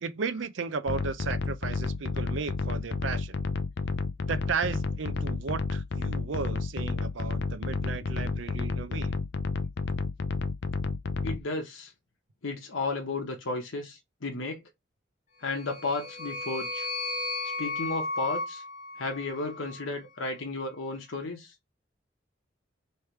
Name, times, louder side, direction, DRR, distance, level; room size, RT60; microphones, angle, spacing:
voice 1, 0.0-3.4 4.3-9.1, right 5 dB, 75° right, 0.5 m, -34 dB
sound 1, 0.9-11.4, left 4 dB, 55° left, 0.4 m, -31 dB
voice 2, 11.2-11.9 12.4-14.6 15.4-16.9 17.6-18.6 19.0-21.5, left 3 dB, 80° left, 1.0 m, -33 dB
sound 2, 15.5-19.9, left 2 dB, 40° left, 1.0 m, -35 dB
3.3 x 3.1 x 4.4 m
head